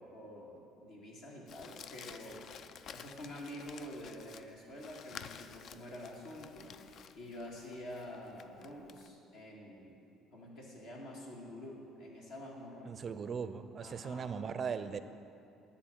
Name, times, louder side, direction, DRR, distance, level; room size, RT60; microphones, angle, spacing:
voice 1, 0.0-2.5 2.9-10.0 10.3-13.0 13.8-14.4, left 1 dB, 75° left, -4 dB, 1.9 m, -48 dB
Crumpling crinkling, 1.5-9.1, left 7 dB, 55° left, 0.3 m, -52 dB
voice 2, 12.8-15.0, right 6 dB, 45° right, 11 dB, 0.4 m, -38 dB
10.5 x 4.1 x 7.4 m, 2.6 s
hypercardioid pair, 60°, 0 cm